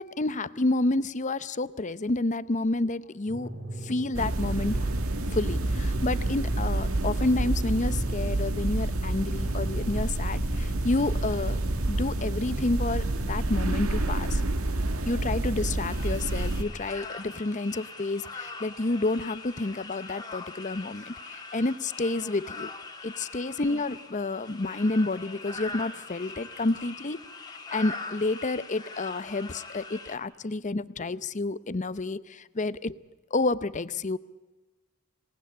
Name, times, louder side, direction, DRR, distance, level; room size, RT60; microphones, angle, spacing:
voice 1, 0.0-3.5 3.8-4.9 5.3-11.6 11.9-14.4 15.0-22.7 23.0-27.2 27.7-33.0 33.3-34.2, left 2 dB, 35° left, 16 dB, 0.7 m, -29 dB
sound 1, 3.3-13.3, right 1 dB, 45° right, 5.0 m, -40 dB
sound 2, 4.1-16.6, right 2 dB, 75° right, 1.9 m, -28 dB
sound 3, 15.8-30.2, left 3 dB, 20° left, 2.0 m, -42 dB
26.5 x 19.0 x 8.7 m, 1.2 s
head